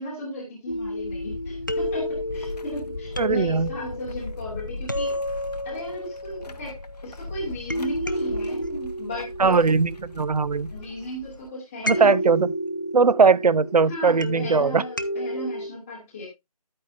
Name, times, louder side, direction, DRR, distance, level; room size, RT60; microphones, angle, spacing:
voice 1, 0.0-5.1 5.6-6.8 7.0-9.8 10.7-12.1 13.9-16.3, left 1 dB, 5° left, 0.8 m, -35 dB
sound 1, 0.7-11.5, left 2 dB, 90° left, 0.9 m, -39 dB
sound 2, 0.7-7.1 7.7-10.7 11.9-15.7, equal, 30° left, 0.4 m, -31 dB
voice 2, 3.2-3.7 9.4-9.9 10.2-10.7 11.8-12.5 12.9-14.8, right 4 dB, 85° right, 0.5 m, -19 dB
9.6 x 8.8 x 2.5 m
figure-of-eight pair, 170°, 20 cm